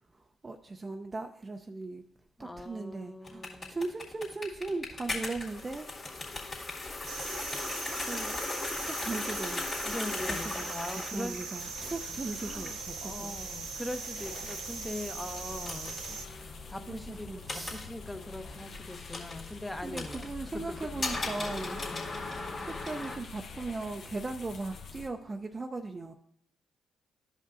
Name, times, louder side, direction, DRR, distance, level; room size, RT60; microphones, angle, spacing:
voice 1, 0.1-2.0 2.4-5.9 8.1-8.5 8.8-9.7 10.3-13.4 16.9-17.8 19.8-21.8 22.6-26.1, right 3 dB, 30° right, 4 dB, 0.5 m, -38 dB
voice 2, 2.4-3.8 9.8-11.4 12.4-20.3 20.7-20.9 21.8-22.1, left 1 dB, 15° left, 8 dB, 0.8 m, -41 dB
sound 1, 3.2-23.2, left 2 dB, 45° left, 2.2 m, -39 dB
sound 2, 7.1-16.3, right 5 dB, 75° right, 0.7 m, -41 dB
sound 3, 11.6-25.1, left 4 dB, 65° left, 0.9 m, -47 dB
12.5 x 5.3 x 2.5 m, 0.71 s
hypercardioid pair, 50°, 0 cm